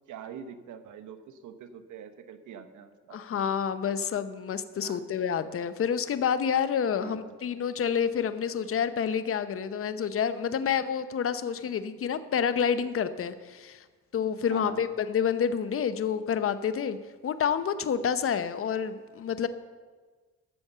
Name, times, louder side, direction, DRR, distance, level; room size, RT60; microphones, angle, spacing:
voice 1, 0.1-3.5 4.7-5.1 7.0-7.3 10.5-10.8 14.5-14.8, right 8 dB, 75° right, 9 dB, 1.1 m, -44 dB
voice 2, 3.1-13.8 14.1-17.0 17.2-19.5, left 7 dB, 45° left, 12 dB, 0.8 m, -28 dB
13.0 x 7.2 x 6.8 m, 1.4 s
cardioid pair, 90°, 30 cm